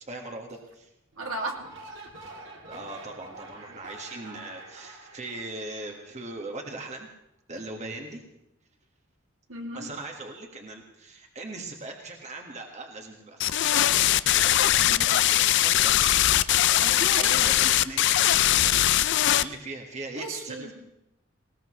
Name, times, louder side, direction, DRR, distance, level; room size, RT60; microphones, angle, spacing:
voice 1, 0.1-0.9 2.7-7.1 7.5-8.2 9.7-14.2 14.4-16.3 17.4-18.2 19.4-20.7, right 2 dB, 35° right, 2 dB, 1.7 m, -40 dB
sound 1, 1.1-6.4, right 2 dB, 60° right, 2.7 m, -46 dB
voice 2, 1.2-1.7 2.0-2.1 9.5-9.9 14.8-15.1 16.8-17.5 20.1-20.7, right 2 dB, 75° right, 1 dB, 2.4 m, -35 dB
sound 2, 13.4-19.4, left 13 dB, 60° left, 0.4 m, -21 dB
20.0 x 18.5 x 3.2 m, 0.83 s
head